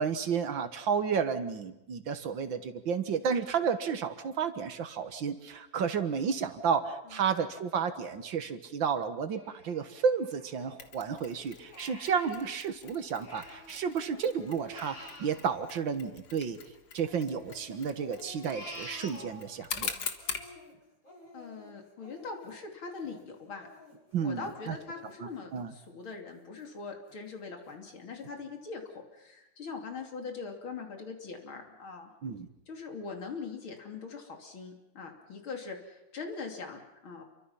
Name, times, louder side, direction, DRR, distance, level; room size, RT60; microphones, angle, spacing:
voice 1, 0.0-16.6 16.9-19.9 24.1-24.8 25.5-25.7 32.2-32.5, right 6 dB, 70° right, 10 dB, 2.1 m, -32 dB
Crying sobbing, 9.3-11.0 11.4-13.8 14.1-16.5 17.0-19.8 20.2-25.6 26.1-26.2 26.6-27.2 27.7-27.8 28.2-28.3, left 1 dB, 40° left, 7.8 m, -50 dB
Mechanisms, 10.8-20.5, left 6 dB, 60° left, 2.2 m, -43 dB
voice 2, 21.3-23.7 24.2-32.1 32.7-37.2, left 4 dB, 85° left, 3 dB, 3.7 m, -42 dB
29.0 x 23.5 x 5.7 m, 0.92 s
omnidirectional pair, 2.2 m